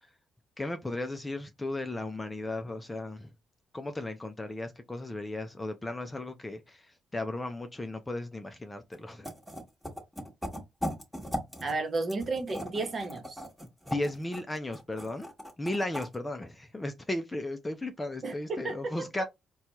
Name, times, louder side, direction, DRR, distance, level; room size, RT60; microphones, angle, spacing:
voice 1, 0.6-3.3 3.7-9.3 13.9-15.3 15.6-19.2, left 2 dB, 15° left, 0.5 m, -35 dB
sound 1, 8.9-9.0 9.2-11.8 12.1-16.2, equal, ahead, 1.3 m, -38 dB
voice 2, 11.6-13.4 18.2-19.2, right 3 dB, 40° right, 1.1 m, -33 dB
4.2 x 2.3 x 2.9 m
cardioid pair, 90°, 0 cm